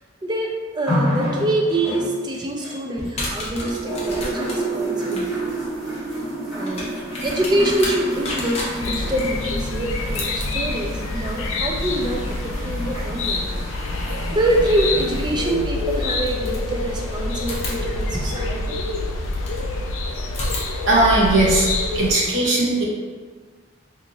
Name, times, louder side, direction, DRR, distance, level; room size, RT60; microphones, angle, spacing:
voice 1, 0.2-5.3 6.6-6.9 7.2-13.5 14.3-18.9, right 1 dB, 20° right, 1 dB, 0.3 m, -25 dB
sound 1, 0.9-3.2 3.6-18.3 19.2-19.3, right 1 dB, 5° right, 1.2 m, -30 dB
sound 2, 2.9-13.7 15.2-15.3 16.0-17.0 17.4-19.7 20.3-22.3, left 1 dB, 30° left, 0.6 m, -34 dB
sound 3, 8.8-22.1, left 2 dB, 80° left, 0.4 m, -27 dB
voice 2, 20.9-21.7 21.9-22.8, right 2 dB, 70° right, -4 dB, 0.8 m, -18 dB
2.8 x 2.4 x 3.7 m, 1.5 s
head